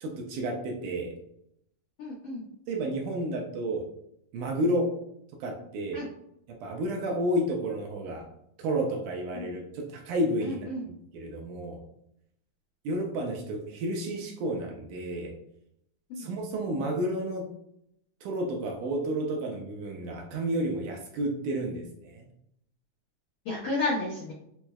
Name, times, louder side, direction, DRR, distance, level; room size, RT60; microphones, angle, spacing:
voice 1, 0.0-1.2 2.7-3.9 4.3-5.0 5.4-6.0 6.5-8.3 8.6-11.8 12.9-15.4 16.2-17.5 18.2-22.3, right 1 dB, 80° right, 1 dB, 1.9 m, -31 dB
voice 2, 2.0-2.4 5.9-6.0 9.3-9.5 10.4-10.8 16.1-16.3 23.4-24.3, left 2 dB, 85° left, -7 dB, 1.2 m, -32 dB
5.9 x 2.0 x 2.2 m, 0.77 s
omnidirectional pair, 3.8 m